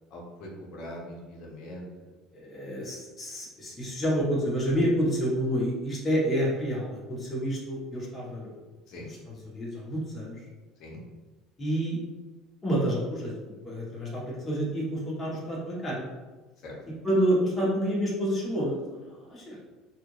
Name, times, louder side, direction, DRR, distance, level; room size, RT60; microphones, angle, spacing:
voice 1, 0.1-2.1 8.9-9.1 10.8-11.0 16.6-17.0, left 1 dB, 60° left, -2 dB, 1.1 m, -42 dB
voice 2, 2.3-8.5 8.9-10.4 11.6-12.0 12.6-16.1 17.0-19.6, equal, 25° left, -5 dB, 1.4 m, -29 dB
3.4 x 2.5 x 3.2 m, 1.2 s
supercardioid pair, 90°, 0 cm